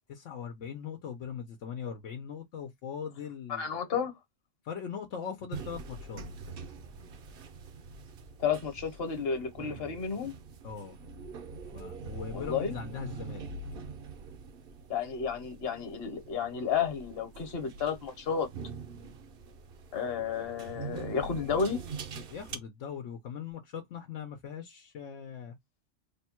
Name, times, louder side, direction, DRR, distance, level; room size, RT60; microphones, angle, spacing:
voice 1, 0.1-3.8 4.6-6.2 10.6-11.0 11.7-13.5 22.1-25.6, left 7 dB, 75° left, 1.1 m, -40 dB
voice 2, 3.5-4.1 8.4-10.3 12.3-12.7 14.9-18.5 19.9-21.8, left 6 dB, 55° left, 1.2 m, -32 dB
sound 1, 5.5-22.6, right 4 dB, 55° right, 0.7 m, -44 dB
3.4 x 2.2 x 4.3 m
omnidirectional pair, 1.3 m